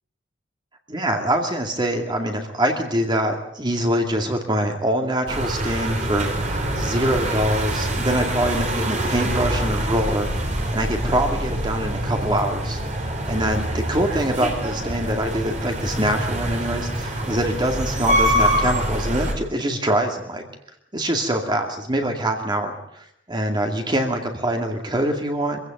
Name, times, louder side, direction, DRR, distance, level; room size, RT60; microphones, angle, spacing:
voice 1, 0.9-12.8 13.3-20.4 20.9-25.6, right 1 dB, 25° right, 3 dB, 2.3 m, -24 dB
sound 1, 5.3-19.3, right 1 dB, 40° right, 3.9 m, -25 dB
25.0 x 16.0 x 9.2 m, 0.77 s
head